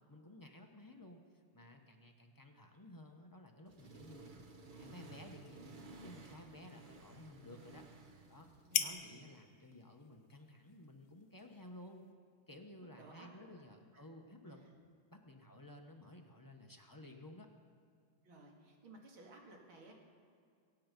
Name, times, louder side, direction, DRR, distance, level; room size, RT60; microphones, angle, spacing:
voice 1, 0.1-4.3 4.7-5.6 6.0-7.8 8.3-8.5 8.8-12.0 12.5-14.6 15.1-17.5, left 1 dB, 20° left, 2 dB, 0.6 m, -55 dB
Accelerating revving vroom, 3.7-8.9, right 3 dB, 45° right, 0.6 m, -55 dB
sound 1, 4.4-12.1, left 9 dB, 75° left, 1.6 m, -46 dB
voice 2, 8.7-9.2 12.8-13.5 13.8-14.0 14.5-14.7 18.2-19.9, right 2 dB, 80° right, 0 dB, 2.8 m, -58 dB
22.5 x 8.8 x 5.3 m, 2.3 s
omnidirectional pair, 2.2 m